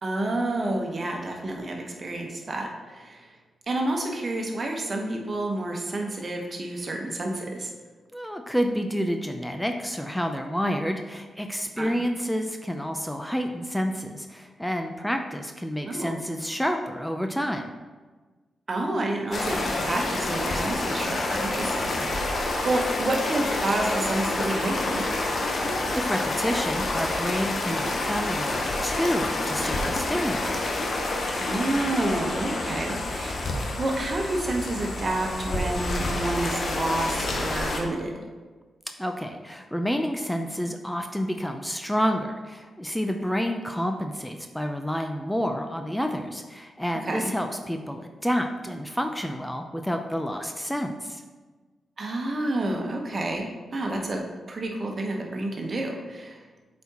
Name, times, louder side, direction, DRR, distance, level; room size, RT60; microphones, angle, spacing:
voice 1, 0.0-3.3 3.7-7.7 11.8-12.0 15.9-16.1 18.7-25.2 31.4-33.4 33.8-38.2 47.1-47.3 52.0-56.4, right 2 dB, 50° right, 1 dB, 1.1 m, -29 dB
voice 2, 8.1-17.7 25.9-30.7 39.0-51.2, equal, 5° left, 5 dB, 0.5 m, -29 dB
sound 1, 19.3-37.8, left 2 dB, 60° left, 0.9 m, -28 dB
7.9 x 4.3 x 2.9 m, 1.3 s
supercardioid pair, 40°, 0 cm